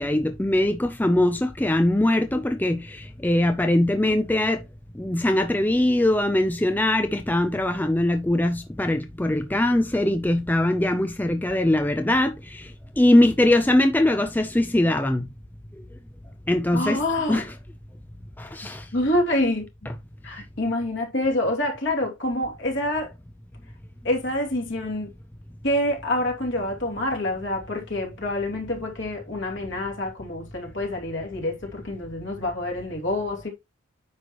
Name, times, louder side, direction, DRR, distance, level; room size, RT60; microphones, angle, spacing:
voice 1, 0.0-4.6 5.0-12.7 13.0-15.3 16.5-17.0 17.3-17.6 18.4-18.8 19.9-20.0, left 1 dB, 10° left, 0.4 m, -22 dB
voice 2, 16.7-17.5 18.9-19.7 20.2-23.1 24.0-25.1 25.6-33.5, left 1 dB, 55° left, 2.7 m, -27 dB
9.5 x 5.9 x 3.0 m
head